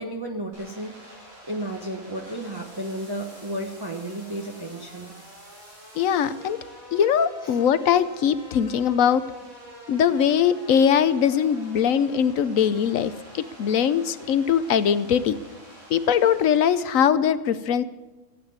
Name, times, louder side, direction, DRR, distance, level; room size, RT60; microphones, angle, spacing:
voice 1, 0.0-5.1 7.4-7.6, right 1 dB, 20° right, 0 dB, 1.1 m, -33 dB
sound 1, 0.5-16.9, equal, 80° right, 6.4 m, -46 dB
voice 2, 6.0-6.6 6.9-9.2 9.9-15.4 15.9-17.8, left 8 dB, 75° left, 14 dB, 1.2 m, -21 dB
16.0 x 8.7 x 9.4 m, 1.1 s
omnidirectional pair, 1.4 m